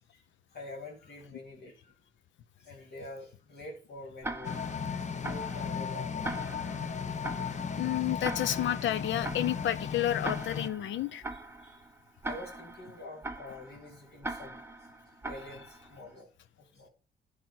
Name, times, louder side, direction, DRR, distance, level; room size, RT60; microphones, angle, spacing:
voice 1, 0.5-1.9 2.6-4.6 4.9-6.3 6.7-7.1 7.5-7.6 11.3-11.8 12.2-15.0 15.2-16.3 16.6-16.9, left 2 dB, 55° left, 3.3 m, -47 dB
Tick-tock, 4.2-16.1, right 2 dB, 10° right, 0.9 m, -42 dB
sound 1, 4.4-10.7, left 6 dB, 35° left, 0.8 m, -35 dB
voice 2, 7.8-11.2, left 12 dB, 70° left, 0.7 m, -30 dB
10.0 x 4.5 x 6.2 m
cardioid pair, 90°, 20 cm